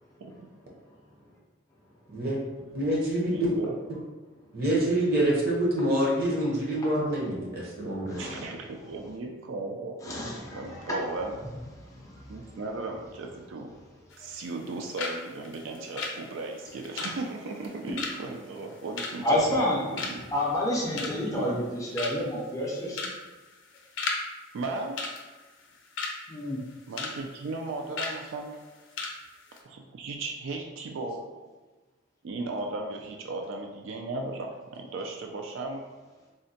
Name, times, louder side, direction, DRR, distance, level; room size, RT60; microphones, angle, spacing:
voice 1, 2.7-3.5 4.5-8.3, right 1 dB, 50° right, -4 dB, 0.8 m, -26 dB
voice 2, 3.3-3.7 8.2-11.4 12.3-13.7 14.2-20.2 21.3-21.5 24.5-25.1 26.9-28.6 29.6-31.2 32.2-35.8, right 3 dB, 75° right, 2 dB, 0.3 m, -36 dB
voice 3, 8.1-8.4 10.0-11.0 11.8-12.3 19.2-19.8 20.3-23.0 26.3-26.6, left 1 dB, 15° left, -4 dB, 0.4 m, -29 dB
sound 1, 14.1-14.7 15.0-15.2 15.4-19.7 20.0-20.4 20.7-21.3 21.7-21.8 22.0-22.4 22.9-23.2 23.5-24.2 24.5-24.6 25.0-26.2 26.6-27.1 27.4-27.6 28.0-28.2 28.6-28.7 29.0-29.2 29.4-29.6, left 4 dB, 70° left, 0.5 m, -34 dB
3.6 x 2.1 x 2.7 m, 1.2 s
head